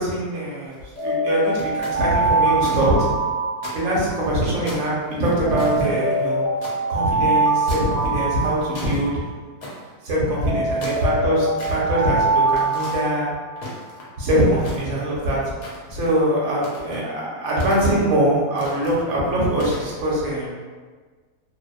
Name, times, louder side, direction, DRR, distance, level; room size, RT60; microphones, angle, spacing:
voice 1, 0.0-3.1 3.7-6.4 6.9-9.2 10.0-13.3 14.2-15.5 15.9-20.5, right 1 dB, 65° right, -5 dB, 0.9 m, -22 dB
sound 1, 0.7-1.0 1.6-2.8 3.1-3.2 3.6-4.3 4.7-6.8 7.7-8.1 8.4-9.0 9.6-9.9 10.6-11.8 12.5-13.0 13.6-14.2 14.6-15.2 15.6-16.1 16.6-17.0 17.6-18.1 18.6-19.0 19.5-19.9, left 1 dB, 80° left, 1.2 m, -37 dB
Alarm, 1.0-4.3 5.4-9.3 10.4-13.7, right 2 dB, 10° left, 0.5 m, -23 dB
2.6 x 2.1 x 2.3 m, 1.4 s
omnidirectional pair, 1.7 m